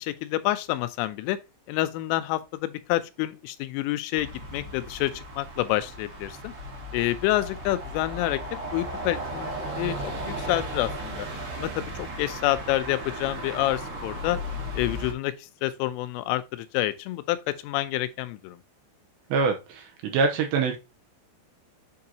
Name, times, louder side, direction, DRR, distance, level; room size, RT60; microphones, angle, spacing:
voice 1, 0.0-1.4 1.7-6.5 6.9-8.4 8.7-11.3 11.5-14.4 14.8-18.6, left 15 dB, 85° left, 3.1 m, -28 dB
sound 1, 4.1-15.1, equal, 60° right, 3.6 m, -36 dB
voice 2, 19.3-20.8, right 4 dB, 80° right, 2.7 m, -25 dB
7.4 x 4.8 x 2.8 m
omnidirectional pair, 5.7 m